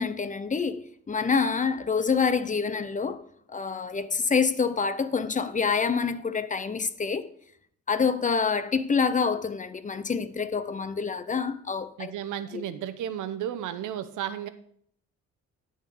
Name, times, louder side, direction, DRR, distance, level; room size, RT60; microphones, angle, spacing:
voice 1, 0.0-3.2 3.5-7.3 7.9-12.1 12.5-12.7, left 5 dB, 25° left, 0.7 m, -27 dB
voice 2, 12.0-14.5, right 10 dB, 80° right, 0.8 m, -33 dB
12.0 x 4.4 x 5.2 m
cardioid pair, 90°, 30 cm